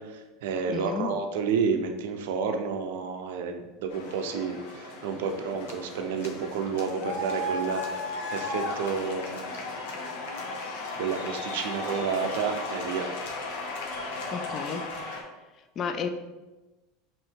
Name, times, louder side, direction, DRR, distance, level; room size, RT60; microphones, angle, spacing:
voice 1, 0.0-7.9 8.3-9.4 11.0-13.1, right 5 dB, 80° right, 5 dB, 0.5 m, -30 dB
voice 2, 0.7-1.1 14.3-14.8 15.8-16.1, left 6 dB, 40° left, 8 dB, 0.4 m, -32 dB
sound 1, 3.9-15.2, left 2 dB, 80° left, 0.8 m, -35 dB
5.4 x 2.7 x 3.6 m, 1.1 s
supercardioid pair, 115°, 0 cm